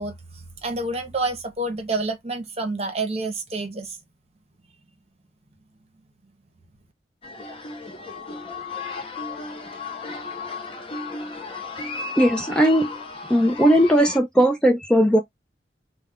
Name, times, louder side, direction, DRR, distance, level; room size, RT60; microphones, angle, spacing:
voice 1, 0.0-4.0, right 2 dB, 35° right, 0.8 m, -28 dB
sound 1, 7.2-14.2, left 3 dB, 30° left, 0.8 m, -34 dB
voice 2, 12.2-12.9 13.3-15.2, equal, 5° left, 0.4 m, -18 dB
2.3 x 2.2 x 3.5 m
head